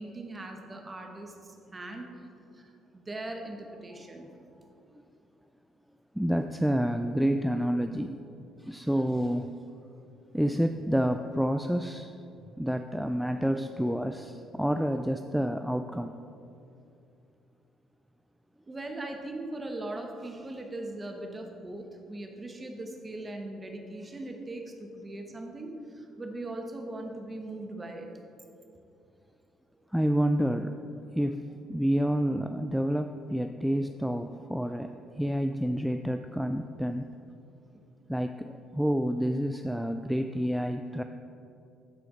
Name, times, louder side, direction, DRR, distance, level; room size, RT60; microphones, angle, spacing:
voice 1, 0.0-2.1 2.5-4.3 18.7-28.1, right 2 dB, 25° right, 3 dB, 1.2 m, -40 dB
voice 2, 6.2-8.2 8.6-9.5 10.3-12.2 12.6-16.1 29.9-30.7 31.1-31.4 31.7-37.1 38.1-41.0, equal, ahead, 6 dB, 0.3 m, -28 dB
12.5 x 4.5 x 3.8 m, 2.7 s
supercardioid pair, 75°, 0 cm